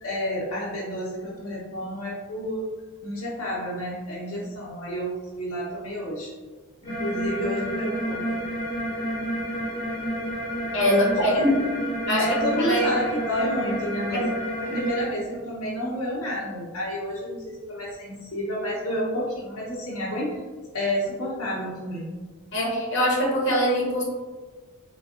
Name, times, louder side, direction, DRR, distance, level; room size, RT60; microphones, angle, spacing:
voice 1, 0.0-2.6 3.0-6.3 6.8-8.4 10.9-11.1 11.4-11.5 12.1-14.3 14.6-20.4 20.7-22.2, equal, 90° left, -5 dB, 0.7 m, -30 dB
sound 1, 6.8-15.1, equal, 20° left, 0.7 m, -30 dB
voice 2, 10.7-11.6 12.1-12.3 12.6-12.9 14.1-14.3 14.6-14.8 22.5-24.0, equal, 55° left, -4 dB, 0.9 m, -23 dB
3.3 x 2.2 x 2.4 m, 1.4 s
head